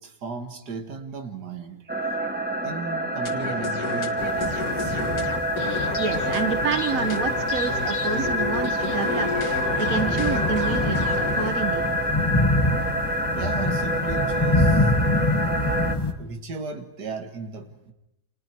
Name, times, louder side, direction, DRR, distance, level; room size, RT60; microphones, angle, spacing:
voice 1, 0.0-2.3 2.6-5.0 10.1-10.2 13.4-14.9 16.2-17.9, right 4 dB, 90° right, 7 dB, 2.2 m, -36 dB
sound 1, 1.9-16.0, equal, 5° right, 0.9 m, -27 dB
sound 2, 3.2-11.5, left 5 dB, 65° left, 2.1 m, -32 dB
sound 3, 4.2-16.1, left 2 dB, 15° left, 1.3 m, -27 dB
voice 2, 6.0-9.3 9.8-11.9, right 5 dB, 60° right, 9 dB, 1.7 m, -28 dB
29.5 x 26.5 x 4.6 m, 0.86 s
omnidirectional pair, 1.7 m